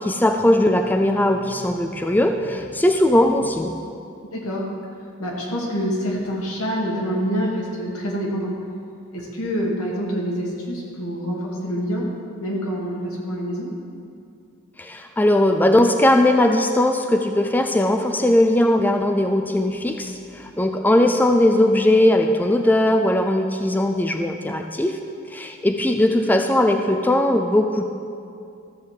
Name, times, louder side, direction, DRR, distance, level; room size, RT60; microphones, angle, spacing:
voice 1, 0.0-3.8 14.8-25.0 25.3-27.8, left 1 dB, 10° left, 5 dB, 0.3 m, -19 dB
voice 2, 4.3-4.7 5.2-8.5 9.1-12.1 12.4-13.7, equal, 85° left, -3 dB, 2.2 m, -26 dB
13.5 x 4.9 x 7.4 m, 2.5 s
head